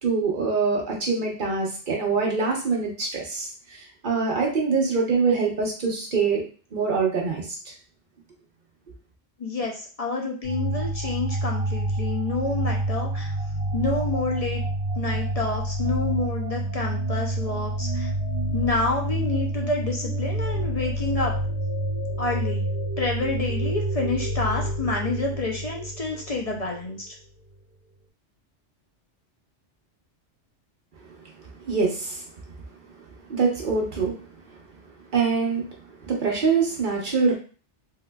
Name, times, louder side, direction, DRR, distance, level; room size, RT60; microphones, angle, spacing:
voice 1, 0.0-6.4 6.7-7.5 31.6-32.2 33.3-34.2 34.5-34.6 35.1-35.7 36.1-37.3, right 4 dB, 45° right, -1 dB, 0.9 m, -24 dB
voice 2, 9.4-13.3 13.7-14.6 15.0-18.1 18.5-21.3 22.2-22.7 23.0-27.1, left 3 dB, 50° left, 0 dB, 0.4 m, -28 dB
sound 1, 10.4-26.8, right 1 dB, 65° right, 1.2 m, -28 dB
3.6 x 2.9 x 2.2 m, 0.38 s
omnidirectional pair, 1.2 m